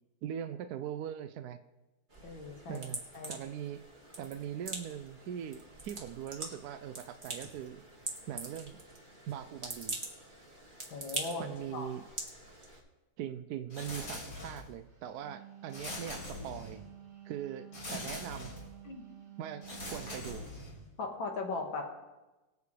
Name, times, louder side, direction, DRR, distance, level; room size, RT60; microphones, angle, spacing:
voice 1, 0.2-1.6 2.7-3.0 3.3-3.9 4.2-7.8 8.3-8.8 9.3-10.0 11.4-12.0 13.2-16.8 17.2-18.5 19.4-20.4, right 10 dB, 75° right, 9 dB, 0.9 m, -41 dB
sound 1, 2.1-12.8, right 2 dB, 25° right, 1.9 m, -44 dB
voice 2, 2.2-2.8 3.1-3.4 10.9-11.5 11.7-11.9 18.9-19.0 21.0-21.9, left 3 dB, 70° left, 2 dB, 2.5 m, -38 dB
sound 2, 13.7-14.8 15.7-16.9 17.7-18.8 19.6-20.9, left 2 dB, 45° left, 2.7 m, -43 dB
Wind instrument woodwind instrument, 15.0-20.3, right 11 dB, 50° right, 2.8 m, -51 dB
23.0 x 8.3 x 3.3 m, 1.1 s
omnidirectional pair, 2.2 m